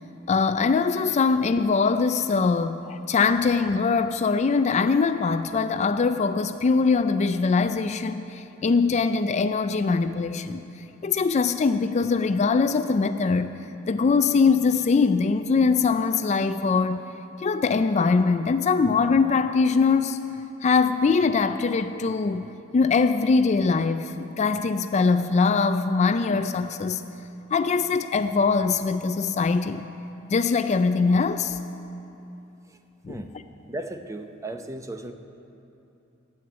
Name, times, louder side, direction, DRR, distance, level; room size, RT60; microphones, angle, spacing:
voice 1, 0.3-10.6 11.0-13.6 13.9-17.0 17.4-20.2 20.6-22.5 22.7-27.0 27.5-29.8 30.3-31.6 33.0-33.2, left 4 dB, 35° left, 0.3 m, -22 dB
voice 2, 33.7-35.1, right 1 dB, 15° right, 0.6 m, -35 dB
12.5 x 8.6 x 8.8 m
head